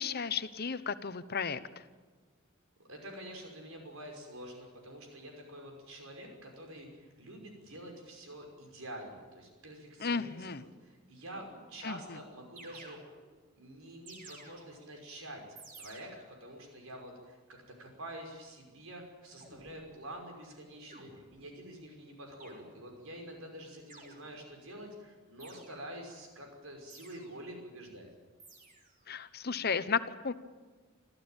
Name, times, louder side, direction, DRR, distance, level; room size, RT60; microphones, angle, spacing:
voice 1, 0.0-1.6 10.0-10.6 11.8-12.0 29.1-30.3, left 5 dB, 50° left, 13 dB, 1.0 m, -33 dB
voice 2, 2.9-13.0 13.6-15.4 15.8-16.1 16.4-28.1, right 1 dB, 75° right, 2 dB, 5.6 m, -47 dB
sound 1, 11.3-12.0 12.6-13.5 14.1-15.0 15.6-16.5 19.4-19.9 20.9-21.6 22.4-23.1 23.9-24.6 25.4-26.1 26.9-27.6 28.4-29.1, right 2 dB, 40° right, 3.6 m, -54 dB
26.0 x 14.5 x 9.0 m, 1.4 s
head